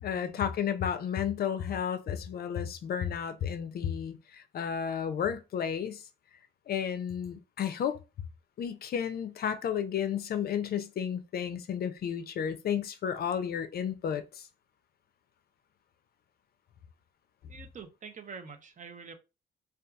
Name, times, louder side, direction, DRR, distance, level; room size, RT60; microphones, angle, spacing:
voice 1, 0.0-6.0 6.7-8.0 8.6-14.4, left 8 dB, 50° left, 0.4 m, -32 dB
voice 2, 17.5-19.1, right 5 dB, 40° right, 0.6 m, -46 dB
2.7 x 2.3 x 2.3 m
supercardioid pair, 70°, 20 cm